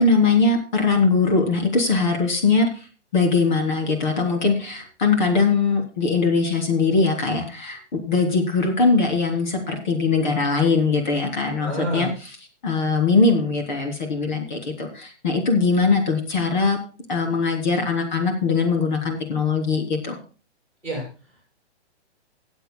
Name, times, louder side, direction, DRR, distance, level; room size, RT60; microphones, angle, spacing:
voice 1, 0.0-2.9 3.1-12.1 12.6-16.8 17.1-20.2, left 4 dB, 40° left, 3 dB, 3.4 m, -21 dB
voice 2, 11.5-12.1 20.8-21.4, equal, 5° left, -3 dB, 6.3 m, -30 dB
24.5 x 8.2 x 2.2 m, 0.35 s
hypercardioid pair, 180°, 35 cm